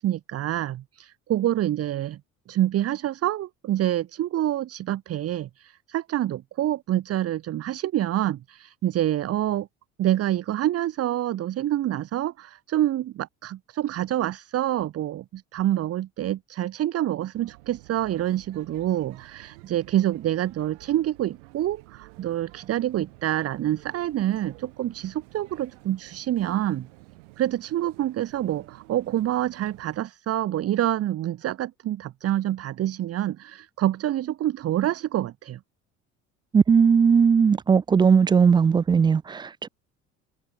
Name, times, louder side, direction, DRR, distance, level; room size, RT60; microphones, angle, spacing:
voice 1, 0.0-2.2 2.5-9.7 10.0-26.9 27.4-35.6, right 13 dB, 40° right, 1.0 m, -27 dB
sound 1, 17.3-30.0, right 27 dB, 65° right, 2.5 m, -51 dB
voice 2, 36.5-39.7, right 6 dB, 15° right, 0.3 m, -18 dB
figure-of-eight pair, 60°, 39 cm